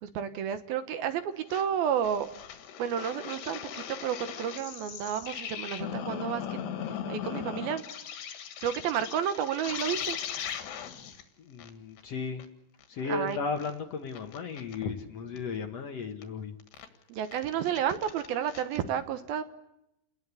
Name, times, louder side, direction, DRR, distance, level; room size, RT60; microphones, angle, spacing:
voice 1, 0.0-2.3 2.8-6.4 7.1-7.8 8.6-10.2 13.1-13.4 17.1-19.4, right 9 dB, 70° right, 10 dB, 2.9 m, -31 dB
sound 1, 1.5-1.7 2.0-11.2 11.6-11.7 12.0-12.1 12.4-12.5 12.8-12.9 13.3-13.7 14.1-14.8 15.4-15.5 16.2-16.3 16.6-16.9 17.3-18.8, left 9 dB, 85° left, 4.0 m, -38 dB
voice 2, 11.4-12.4 12.9-16.6, left 5 dB, 60° left, 5 dB, 1.8 m, -35 dB
29.5 x 20.0 x 8.3 m, 0.84 s
omnidirectional pair, 4.7 m